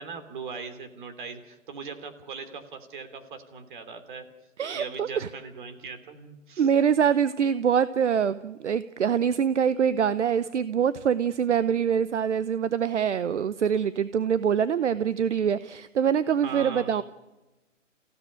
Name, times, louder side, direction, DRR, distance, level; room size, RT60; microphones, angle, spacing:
voice 1, 0.0-4.3 4.7-6.7 16.4-16.9, right 5 dB, 40° right, 8 dB, 3.1 m, -39 dB
voice 2, 4.6-5.3 6.6-17.0, right 8 dB, 65° right, 15 dB, 0.9 m, -24 dB
29.0 x 16.0 x 9.9 m, 1.1 s
hypercardioid pair, 160°, 39 cm